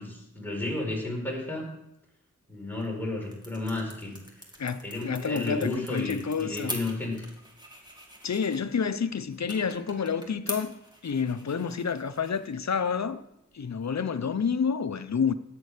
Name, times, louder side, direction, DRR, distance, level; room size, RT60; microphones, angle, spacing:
voice 1, 0.0-1.7 2.5-4.1 4.8-7.3, left 2 dB, 5° left, 4.9 m, -33 dB
sound 1, 2.6-14.2, equal, 15° right, 2.6 m, -45 dB
voice 2, 4.6-6.8 8.2-10.8 11.0-13.2 13.5-15.3, left 6 dB, 60° left, 0.7 m, -29 dB
14.0 x 9.4 x 5.0 m
wide cardioid pair, 75°, 31 cm